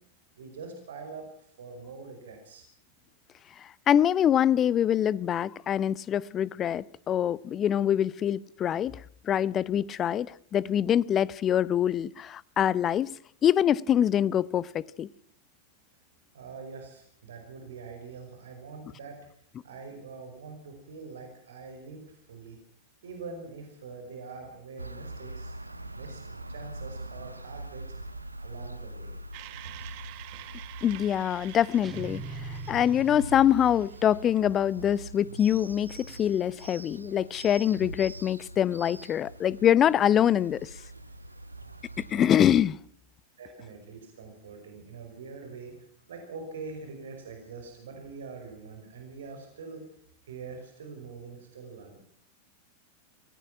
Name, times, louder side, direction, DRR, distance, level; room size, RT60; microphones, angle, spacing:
voice 1, 0.4-2.6 16.3-19.3 19.6-22.6 23.0-25.5 25.9-27.8 28.4-29.2 43.4-49.9 50.2-52.0, right 4 dB, 65° right, 5.5 m, -44 dB
voice 2, 3.6-13.1 13.4-15.1 30.8-40.7 42.0-42.8, left 10 dB, 30° left, 0.8 m, -25 dB
sound 1, 24.8-42.4, right 2 dB, 85° right, 1.1 m, -43 dB
sound 2, 29.3-34.4, right 17 dB, 45° right, 1.7 m, -47 dB
sound 3, 31.8-33.9, right 5 dB, 20° right, 1.1 m, -42 dB
24.5 x 18.0 x 6.0 m
figure-of-eight pair, 90°, 0 cm